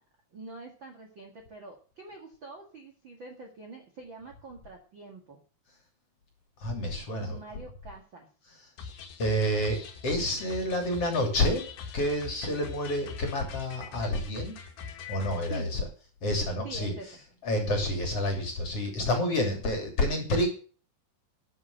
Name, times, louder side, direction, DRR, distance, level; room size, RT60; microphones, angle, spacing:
voice 1, 0.3-5.4 7.1-8.3 15.4-15.7 16.6-17.2, right 3 dB, 40° right, 2 dB, 1.8 m, -45 dB
voice 2, 6.6-7.4 9.2-11.7 11.9-14.6 15.1-15.8 16.2-16.9 17.4-20.5, left 1 dB, 40° left, 3 dB, 3.4 m, -28 dB
sound 1, 8.8-15.6, left 6 dB, 80° left, 4.3 m, -43 dB
12.5 x 7.4 x 6.6 m, 0.39 s
omnidirectional pair, 4.8 m